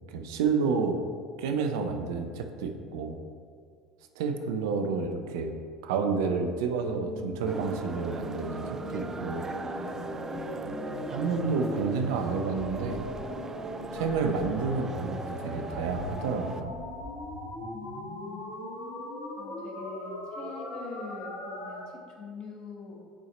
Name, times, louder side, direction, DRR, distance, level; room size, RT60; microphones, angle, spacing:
voice 1, 0.1-1.0 1.4-3.2 4.2-5.5 5.8-9.5 11.1-13.0 13.9-16.7, right 5 dB, 70° right, 6 dB, 0.6 m, -30 dB
sound 1, 6.8-21.8, left 1 dB, 75° left, 1.2 m, -39 dB
sound 2, 7.5-16.6, right 3 dB, 20° right, 0.4 m, -39 dB
voice 2, 17.6-18.6 19.4-23.0, left 4 dB, 50° left, 1 dB, 1.4 m, -44 dB
7.5 x 4.6 x 4.2 m, 2.1 s
hypercardioid pair, 70°, 2 cm